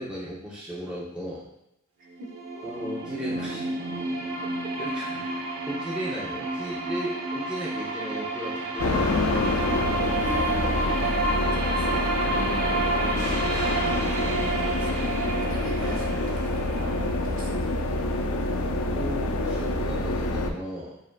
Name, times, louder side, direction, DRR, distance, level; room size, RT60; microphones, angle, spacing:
voice 1, 0.0-1.5 2.6-3.7 4.8-9.2 15.3-15.4 18.8-21.0, equal, 5° right, -7 dB, 0.6 m, -36 dB
sound 1, 2.1-18.0, right 2 dB, 90° right, 0.8 m, -30 dB
sound 2, 8.8-20.5, left 2 dB, 90° left, 0.5 m, -27 dB
voice 2, 10.2-11.1 11.5-15.1 15.5-17.7, right 1 dB, 40° right, -2 dB, 0.8 m, -40 dB
7.2 x 2.5 x 2.2 m, 0.84 s
head